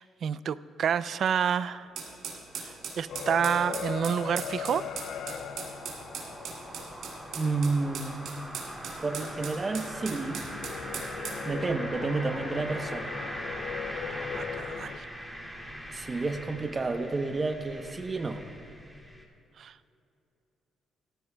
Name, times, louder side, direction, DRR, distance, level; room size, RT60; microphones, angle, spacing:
voice 1, 0.0-1.9 2.6-4.9 14.3-15.1 19.6-19.7, right 8 dB, 60° right, 16 dB, 0.3 m, -29 dB
sound 1, 1.7-19.2, equal, 5° left, 2.2 m, -42 dB
sound 2, 2.0-11.4, right 6 dB, 80° right, 2.8 m, -39 dB
sound 3, 3.1-7.8 10.0-15.0, left 8 dB, 75° left, 0.4 m, -39 dB
voice 2, 7.3-8.3 9.0-10.4 11.4-13.1 15.9-18.4, right 3 dB, 30° right, 6 dB, 0.8 m, -30 dB
17.5 x 14.5 x 2.3 m, 2.6 s
cardioid pair, 90°, 0 cm